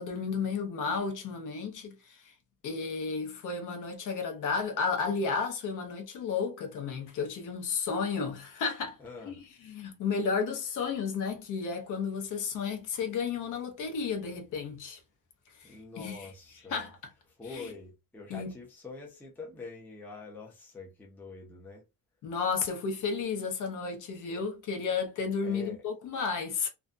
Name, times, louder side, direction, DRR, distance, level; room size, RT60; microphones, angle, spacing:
voice 1, 0.0-2.3 2.6-9.0 9.2-15.0 15.6-16.3 16.7-16.9 17.5-17.6 18.3-18.5 22.2-26.7, left 5 dB, 60° left, 0.8 m, -33 dB
voice 2, 9.0-9.4 15.6-16.9 17.4-21.8 25.4-25.8, left 3 dB, 5° left, 0.4 m, -45 dB
2.4 x 2.2 x 2.5 m
cardioid pair, 170°, 36 cm